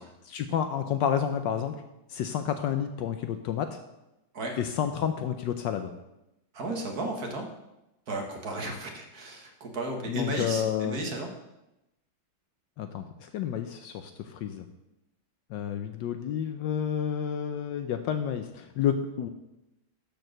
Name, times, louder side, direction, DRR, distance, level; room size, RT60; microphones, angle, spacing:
voice 1, 0.3-1.7 2.1-3.8 4.6-5.9 10.1-11.0 12.8-14.7 15.5-19.3, left 8 dB, 75° left, 8 dB, 1.2 m, -30 dB
voice 2, 6.5-7.5 8.1-11.3, right 1 dB, 50° right, 2 dB, 1.9 m, -34 dB
12.0 x 4.7 x 6.5 m, 0.92 s
omnidirectional pair, 2.1 m